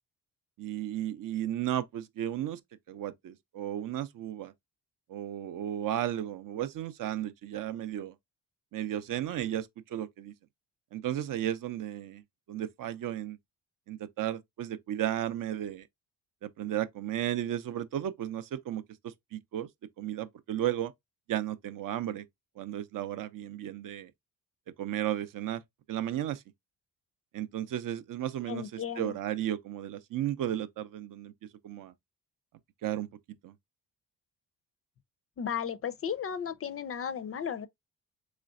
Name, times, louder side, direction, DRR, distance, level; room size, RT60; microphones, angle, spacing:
voice 1, 0.6-2.6 2.9-4.5 5.1-8.1 8.7-10.3 10.9-12.2 12.5-13.4 13.9-15.9 16.4-19.7 20.0-20.9 21.3-22.3 22.6-24.1 24.8-25.6 25.9-26.4 27.3-31.3 31.6-31.9 32.8-33.5, right 11 dB, 60° right, 0.5 m, -34 dB
voice 2, 28.5-29.1 35.4-37.7, left 8 dB, 40° left, 0.4 m, -35 dB
3.7 x 3.2 x 2.4 m
cardioid pair, 95°, 38 cm